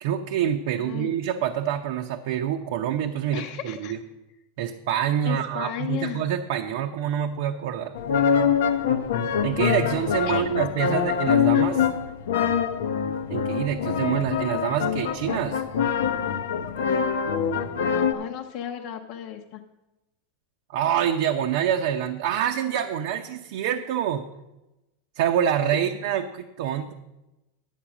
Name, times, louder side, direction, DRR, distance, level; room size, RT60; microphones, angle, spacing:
voice 1, 0.0-4.0 4.6-7.9 9.4-11.8 13.3-15.6 20.7-24.3 25.2-26.9, right 9 dB, 70° right, 3 dB, 0.6 m, -26 dB
voice 2, 0.7-1.1 3.3-3.9 5.2-6.2 10.3-10.5 18.1-19.6, left 10 dB, 55° left, 3 dB, 0.7 m, -34 dB
sound 1, 7.9-18.1, left 7 dB, 90° left, 0.7 m, -24 dB
10.0 x 7.4 x 6.0 m, 0.98 s
supercardioid pair, 140°, 0 cm